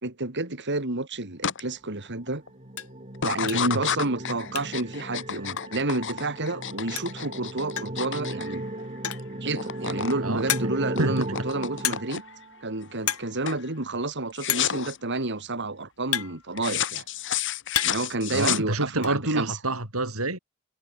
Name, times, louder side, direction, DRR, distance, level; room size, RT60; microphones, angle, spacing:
voice 1, 0.0-2.4 3.2-8.6 9.4-12.2 12.6-17.1 17.8-19.6, right 2 dB, 55° right, 3.5 m, -30 dB
sound 1, 1.4-1.6 2.1-2.5 3.1-9.2 9.5-10.2 10.5-12.4 12.9-13.2 13.5-13.7 14.4-15.0 16.6-19.1, left 9 dB, 60° left, 1.9 m, -31 dB
sound 2, 1.8-1.9 2.3-2.4 2.7-3.0 3.5-3.8 4.1-4.9 5.2-5.3 5.6-5.7 6.7-6.8 7.0-7.3 7.8-8.1 8.9-9.4 9.9-10.0 10.5-11.0 11.8-12.3 12.5-12.7 13.0-13.3 13.6-13.7 14.5-14.8 15.6-16.9 17.4-18.1 18.4-19.1, left 11 dB, 90° left, 4.6 m, -31 dB
sound 3, 2.0-12.7, right 1 dB, 30° right, 7.3 m, -36 dB
voice 2, 18.3-20.4, right 2 dB, 75° right, 7.8 m, -27 dB
head